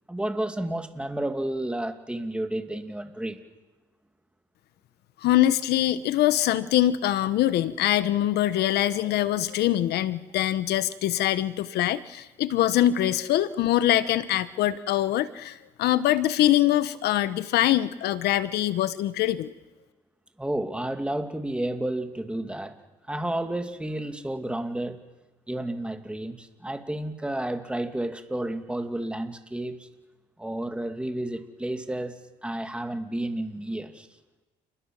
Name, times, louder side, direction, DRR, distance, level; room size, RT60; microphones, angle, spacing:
voice 1, 0.1-3.4 20.4-22.8 23.1-25.0 25.5-29.9 30.4-34.1, right 1 dB, 5° right, 7 dB, 2.4 m, -31 dB
voice 2, 5.2-19.5, left 13 dB, 75° left, 15 dB, 1.1 m, -23 dB
29.0 x 21.0 x 7.7 m, 1.1 s
cardioid pair, 110°, 17 cm